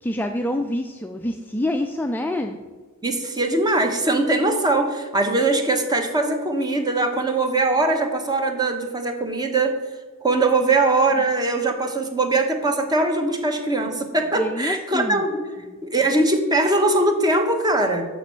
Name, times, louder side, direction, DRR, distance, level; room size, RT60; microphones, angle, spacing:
voice 1, 0.0-2.6 14.4-15.2 15.7-15.8, left 1 dB, 10° left, 4 dB, 0.3 m, -26 dB
voice 2, 3.0-9.7 10.2-15.3 15.8-18.1, right 2 dB, 20° right, 5 dB, 1.0 m, -21 dB
6.7 x 6.1 x 6.9 m, 1.4 s
head